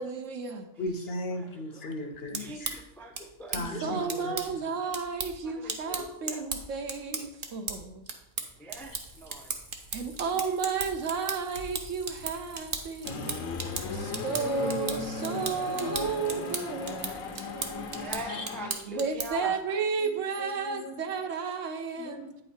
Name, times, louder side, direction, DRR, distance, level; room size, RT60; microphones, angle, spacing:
voice 1, 0.0-0.7 3.6-8.1 9.9-13.4 13.7-17.4 18.9-22.4, right 5 dB, 65° right, 6 dB, 1.1 m, -33 dB
voice 2, 0.8-2.8 3.5-4.4 14.5-16.5 16.8-16.9 17.2-18.5 20.0-20.1 20.6-21.0 22.0-22.4, left 1 dB, 50° left, 4 dB, 0.9 m, -37 dB
voice 3, 1.3-1.9 2.3-4.4 5.4-6.5 8.6-9.5 13.2-13.4 14.5-14.6 17.9-19.6, right 1 dB, ahead, 2 dB, 0.5 m, -43 dB
sound 1, 2.1-19.5, right 4 dB, 45° right, 0.9 m, -38 dB
sound 2, 8.7-18.1, right 1 dB, 85° right, 2.1 m, -52 dB
sound 3, 13.0-18.7, left 4 dB, 75° left, 1.2 m, -37 dB
8.9 x 5.5 x 4.2 m, 0.83 s
omnidirectional pair, 1.5 m